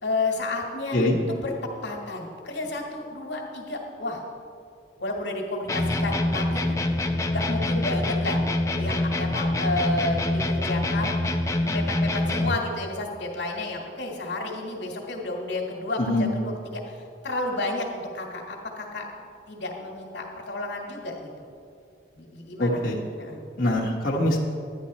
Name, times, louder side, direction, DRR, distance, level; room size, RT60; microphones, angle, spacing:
voice 1, 0.0-1.5 1.8-4.2 5.0-6.8 7.3-8.5 8.8-11.1 11.6-19.1 19.5-21.3 22.1-22.8 23.2-23.4, left 2 dB, 70° left, -1 dB, 1.7 m, -31 dB
sound 1, 5.7-12.7, left 1 dB, 15° left, 0.5 m, -25 dB
voice 2, 16.0-16.3 22.6-23.0 23.6-24.4, left 1 dB, 50° left, -3 dB, 1.2 m, -23 dB
11.5 x 9.8 x 4.2 m, 2.4 s
head